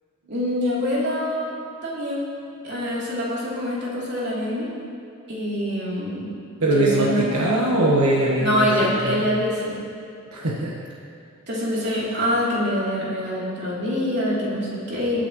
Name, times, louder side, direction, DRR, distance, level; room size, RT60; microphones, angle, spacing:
voice 1, 0.3-1.5 1.8-2.3 2.6-4.7 5.3-6.3 6.7-7.3 8.4-9.8 11.5-15.2, equal, 50° right, -7 dB, 3.3 m, -25 dB
voice 2, 6.6-9.2 10.3-10.7, right 1 dB, 80° right, -4 dB, 1.4 m, -21 dB
21.5 x 8.5 x 3.2 m, 2.5 s
head